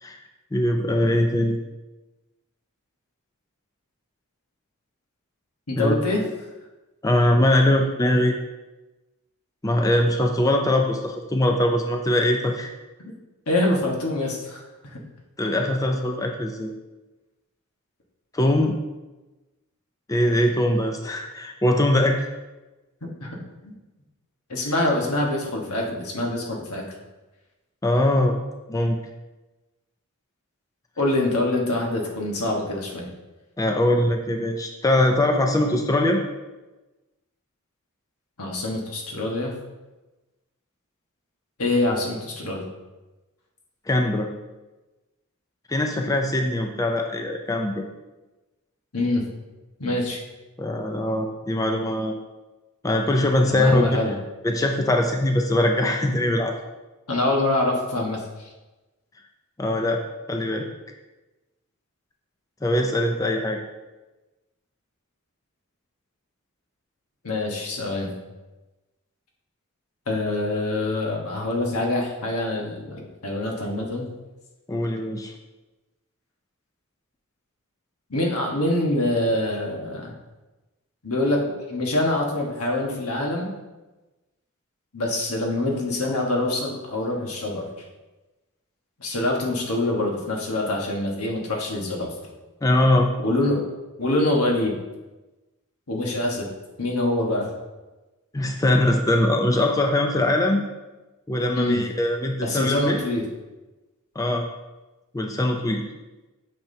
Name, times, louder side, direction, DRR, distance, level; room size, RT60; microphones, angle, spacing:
voice 1, 0.5-1.6 5.8-6.0 7.0-8.3 9.6-12.7 15.4-16.7 18.3-18.8 20.1-22.2 24.7-24.8 27.8-28.3 28.7-29.0 33.6-36.2 43.9-44.3 45.7-47.8 50.6-52.2 52.8-54.0 54.4-56.5 59.6-60.0 60.3-60.7 62.6-63.6 74.7-75.3 92.6-93.1 98.3-100.6 101.3-103.0 104.2-104.5 105.1-105.8, left 1 dB, 15° left, 3 dB, 0.5 m, -22 dB
voice 2, 5.7-6.2 13.0-13.1 13.5-14.6 14.9-15.0 23.0-23.4 23.6-23.7 24.5-26.8 31.0-33.1 38.4-39.5 41.6-42.7 48.9-49.2 49.8-50.2 53.5-54.1 57.1-58.2 67.2-68.1 70.1-74.1 78.1-80.1 81.0-83.5 84.9-87.7 89.0-92.1 93.2-93.6 94.0-94.7 95.9-96.5 96.8-97.5 101.5-101.8 102.4-103.3, left 2 dB, 80° left, 0 dB, 1.4 m, -25 dB
8.8 x 5.8 x 2.8 m, 1.1 s
head